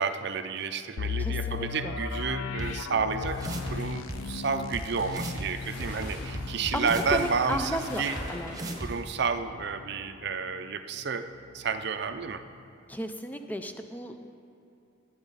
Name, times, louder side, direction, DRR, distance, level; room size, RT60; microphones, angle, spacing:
voice 1, 0.0-8.2 8.7-11.3 11.5-12.4, right 5 dB, 55° right, 10 dB, 0.5 m, -31 dB
sound 1, 1.0-10.7 11.0-11.1 11.7-11.9, left 5 dB, 75° left, 0.4 m, -37 dB
voice 2, 1.2-2.0 5.9-6.1 6.7-8.0 8.3-8.9 12.9-14.3, equal, 10° left, 6 dB, 0.4 m, -34 dB
sound 2, 1.8-2.1 2.9-8.9, left 1 dB, 40° left, 2.8 m, -46 dB
sound 3, 2.6-2.7 3.2-3.7 4.1-4.2 4.7-4.8 5.1-5.5 5.8-7.2 7.5-7.6 8.2-8.3 8.5-8.9, right 1 dB, 20° right, 1.0 m, -35 dB
19.0 x 8.9 x 4.1 m, 2.7 s
head